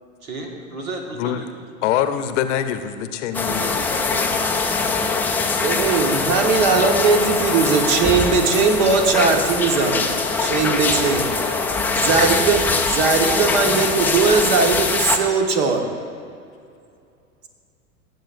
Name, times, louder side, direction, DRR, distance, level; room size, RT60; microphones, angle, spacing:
voice 1, 0.2-1.5 3.3-4.9, right 2 dB, 75° right, 1 dB, 1.9 m, -34 dB
voice 2, 1.1-1.4 1.8-3.8, left 10 dB, 55° left, 10 dB, 0.8 m, -24 dB
sound 1, 3.3-15.2, left 4 dB, 5° left, 0.3 m, -22 dB
voice 3, 5.6-11.3 11.9-15.9, right 4 dB, 55° right, 4 dB, 1.5 m, -19 dB
17.5 x 7.8 x 2.6 m, 2.4 s
hypercardioid pair, 95°, 42 cm